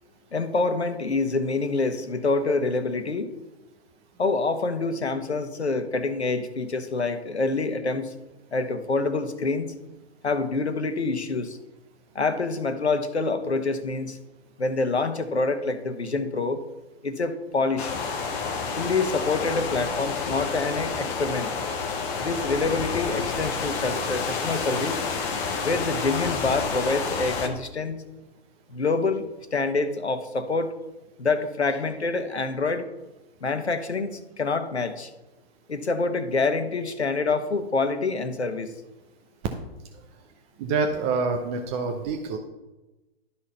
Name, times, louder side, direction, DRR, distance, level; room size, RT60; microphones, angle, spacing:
voice 1, 0.3-3.3 4.2-8.1 8.5-9.7 10.2-11.6 12.1-14.2 14.6-16.6 17.0-18.0 18.8-21.5 22.2-25.0 25.6-28.0 28.7-29.2 29.5-30.7 31.2-32.9 33.4-35.1 35.7-38.7, left 3 dB, 85° left, 9 dB, 1.2 m, -26 dB
sound 1, 17.8-27.5, left 5 dB, 10° left, 0.4 m, -29 dB
voice 2, 40.6-42.4, right 4 dB, 25° right, 4 dB, 0.7 m, -26 dB
12.0 x 4.3 x 5.6 m, 1.0 s
figure-of-eight pair, 125°, 32 cm